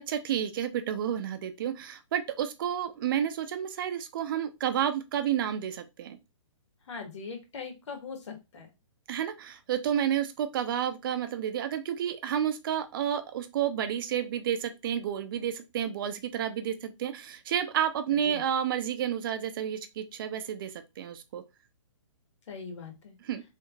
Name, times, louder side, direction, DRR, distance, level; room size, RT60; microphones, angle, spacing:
voice 1, 0.0-6.2 9.1-21.4 23.2-23.4, right 9 dB, 40° right, 9 dB, 0.5 m, -30 dB
voice 2, 6.9-8.7 18.3-18.4 22.5-23.1, left 5 dB, 65° left, 4 dB, 1.4 m, -41 dB
3.3 x 3.1 x 2.4 m, 0.24 s
hypercardioid pair, 155°, 17 cm